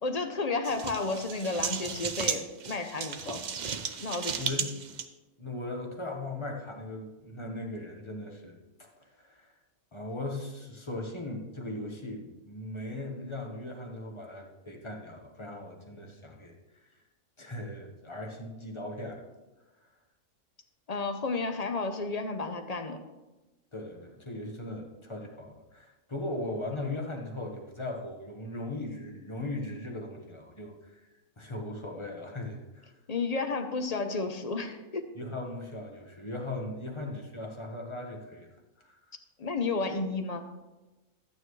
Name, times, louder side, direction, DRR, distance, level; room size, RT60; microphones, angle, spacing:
voice 1, 0.0-3.7 4.0-4.5 20.9-23.0 33.1-35.1 39.4-40.5, left 3 dB, 40° left, 7 dB, 0.6 m, -32 dB
sound 1, 0.6-5.1, right 7 dB, 75° right, 0.4 m, -35 dB
voice 2, 4.3-4.9 5.4-8.9 9.2-9.5 9.9-16.6 17.4-19.2 23.7-31.1 31.4-32.9 35.1-38.5 38.8-39.0, left 2 dB, 20° left, 2 dB, 1.2 m, -38 dB
12.0 x 9.0 x 3.2 m, 1.1 s
omnidirectional pair, 1.5 m